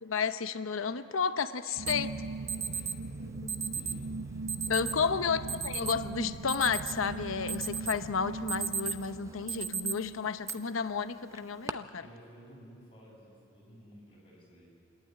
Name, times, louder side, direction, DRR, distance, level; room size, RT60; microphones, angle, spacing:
voice 1, 0.0-2.1 3.4-3.6 4.7-12.0, left 6 dB, 80° left, 11 dB, 0.8 m, -32 dB
sound 1, 1.8-11.2, right 3 dB, 90° right, 0.6 m, -40 dB
Alarm, 1.9-2.0 2.5-3.0 3.5-4.0 4.5-5.0 5.5-5.9 6.3-7.1 7.5-8.0 8.3-9.1 9.5-9.9 10.5-10.6 11.4-11.7, right 6 dB, 15° right, 0.6 m, -34 dB
voice 2, 2.2-3.3 3.7-5.1 12.0-14.7, equal, 25° left, -4 dB, 7.2 m, -54 dB
28.5 x 12.0 x 9.3 m, 2.5 s
head